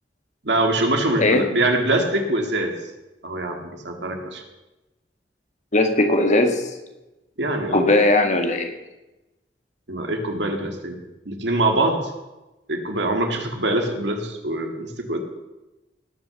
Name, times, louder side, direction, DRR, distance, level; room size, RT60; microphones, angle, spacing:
voice 1, 0.4-2.7 3.2-4.4 7.4-7.9 9.9-11.0 11.3-12.1 12.7-15.2, right 2 dB, 80° right, 3 dB, 2.3 m, -23 dB
voice 2, 5.7-6.6 7.7-8.7, left 2 dB, 45° left, 5 dB, 1.7 m, -18 dB
19.0 x 6.4 x 7.1 m, 1.0 s
head